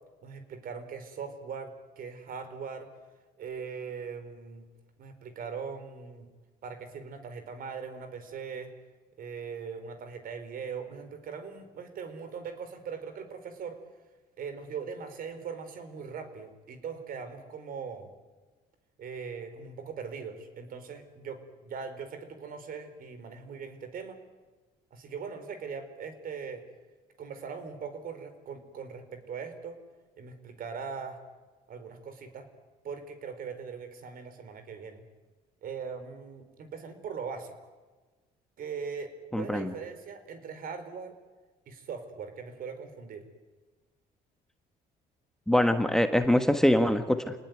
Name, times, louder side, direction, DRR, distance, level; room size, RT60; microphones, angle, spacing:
voice 1, 0.2-2.9 3.4-4.7 5.0-6.3 6.6-8.7 9.2-13.8 14.4-18.1 19.0-24.2 24.9-26.6 27.2-29.8 30.2-31.2 31.7-32.5 32.8-35.0 35.6-37.5 38.6-41.2 41.7-43.2, right 6 dB, 60° right, 9 dB, 4.6 m, -40 dB
voice 2, 39.3-39.7 45.5-47.3, left 1 dB, 5° left, 8 dB, 1.5 m, -24 dB
28.5 x 19.0 x 9.5 m, 1.3 s
cardioid pair, 110°, 17 cm